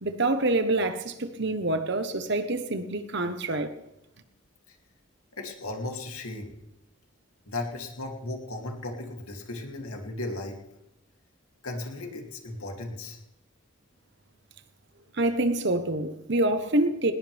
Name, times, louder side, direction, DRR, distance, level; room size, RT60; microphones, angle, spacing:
voice 1, 0.0-3.7 15.1-17.1, right 2 dB, 50° right, 1.1 m, -26 dB
voice 2, 5.4-6.6 7.5-10.6 11.6-13.2, left 2 dB, 90° left, 2.9 m, -36 dB
20.0 x 19.0 x 3.5 m
head